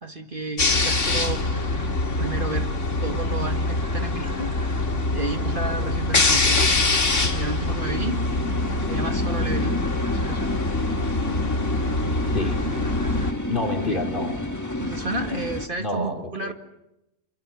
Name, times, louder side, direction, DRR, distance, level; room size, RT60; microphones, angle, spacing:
voice 1, 0.0-1.5 2.2-2.7 3.0-4.5 5.1-6.6 7.3-8.2 8.9-9.8 10.1-10.6 13.8-14.0 14.8-16.5, right 3 dB, 40° right, 5 dB, 2.2 m, -31 dB
sound 1, 0.6-13.3, left 2 dB, 65° left, 2.7 m, -24 dB
sound 2, 7.7-15.7, left 2 dB, 15° left, 1.4 m, -30 dB
voice 2, 12.3-12.7 13.5-14.4 15.8-16.5, left 1 dB, 40° left, 3 dB, 3.7 m, -28 dB
27.5 x 25.0 x 7.0 m, 0.90 s
omnidirectional pair, 1.3 m